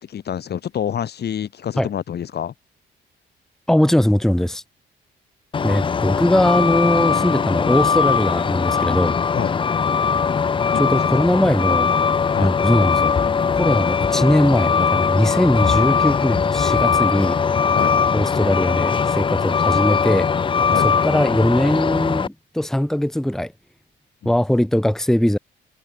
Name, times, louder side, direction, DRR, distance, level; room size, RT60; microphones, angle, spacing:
voice 1, 0.0-2.5 9.3-9.5 10.7-11.2 12.3-12.5 17.7-17.9 20.7-20.9 24.2-24.3, left 9 dB, 55° left, 1.8 m, -27 dB
voice 2, 3.7-4.6 5.6-9.2 10.8-11.9 12.4-13.1 13.5-17.4 18.1-20.3 20.7-23.5 24.2-25.4, left 1 dB, ahead, 1.2 m, -20 dB
Truck, 5.5-22.3, left 6 dB, 25° left, 0.5 m, -20 dB
cardioid pair, 90°, 20 cm